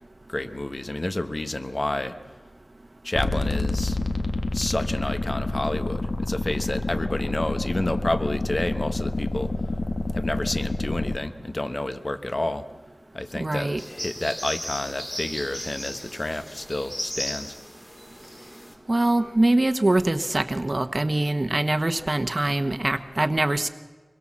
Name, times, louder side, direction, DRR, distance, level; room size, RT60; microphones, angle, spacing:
voice 1, 0.3-2.2 3.0-4.1 4.5-9.5 10.1-12.6 13.1-17.5, left 1 dB, 40° left, 10 dB, 1.2 m, -30 dB
sound 1, 3.2-11.2, left 2 dB, 60° left, 1.6 m, -28 dB
voice 2, 13.4-13.8 18.9-23.7, right 2 dB, 35° right, 9 dB, 1.1 m, -23 dB
sound 2, 13.8-18.7, equal, 20° left, 4.7 m, -36 dB
26.0 x 21.5 x 7.4 m, 1.3 s
wide cardioid pair, 60°, 0 cm